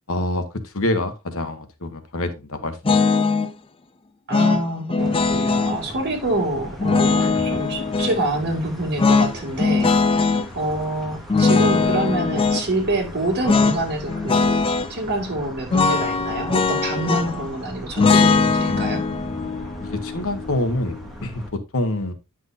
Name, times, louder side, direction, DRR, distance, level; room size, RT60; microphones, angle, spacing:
voice 1, 0.1-2.9 7.2-7.4 18.7-19.4 19.8-22.1, left 1 dB, 65° left, 1.2 m, -27 dB
sound 1, 2.8-3.5 4.3-5.8 6.8-8.2 9.0-10.5 11.3-12.6 13.4-13.8 14.1-14.9 15.7-17.5 18.0-21.0, left 4 dB, 25° left, 0.5 m, -20 dB
voice 2, 4.3-9.9 10.5-14.6 14.9-19.1, right 1 dB, 50° right, 2.3 m, -26 dB
sound 2, 5.0-21.5, equal, ahead, 2.0 m, -38 dB
9.6 x 6.2 x 2.6 m
head